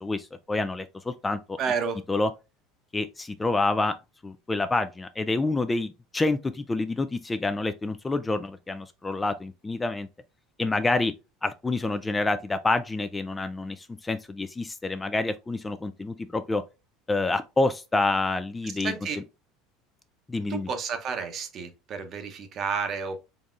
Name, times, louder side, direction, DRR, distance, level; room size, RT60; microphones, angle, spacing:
voice 1, 0.0-1.6 2.1-2.3 2.9-4.0 4.2-10.1 10.6-11.1 11.4-16.6 17.1-18.9 20.3-20.7, left 2 dB, 15° left, 0.3 m, -27 dB
voice 2, 1.6-2.0 18.8-19.2 20.5-23.2, right 6 dB, 45° right, 0.9 m, -31 dB
3.9 x 3.5 x 2.5 m
supercardioid pair, 110°, 0 cm